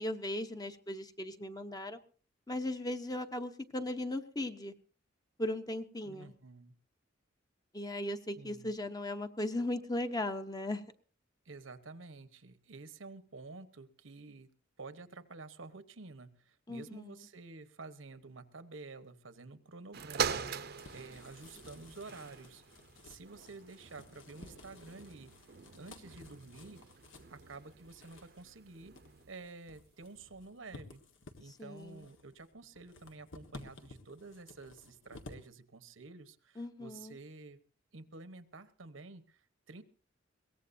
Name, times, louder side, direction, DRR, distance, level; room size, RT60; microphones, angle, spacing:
voice 1, 0.0-2.0 2.5-4.7 5.4-6.3 7.7-10.8 16.7-17.2 31.6-32.1 36.6-37.2, left 1 dB, 20° left, 8 dB, 0.9 m, -37 dB
voice 2, 6.0-6.7 8.3-8.7 11.4-14.5 14.8-22.6 23.0-25.3 25.8-26.8 27.3-29.0 29.3-31.0 31.4-37.6 37.9-39.8, right 3 dB, 85° right, 11 dB, 1.1 m, -50 dB
sound 1, 19.9-29.5 30.2-30.3, right 6 dB, 55° right, 0.7 m, -43 dB
sound 2, 20.1-35.5, left 2 dB, 75° left, 1.6 m, -55 dB
22.0 x 18.0 x 2.7 m, 0.40 s
head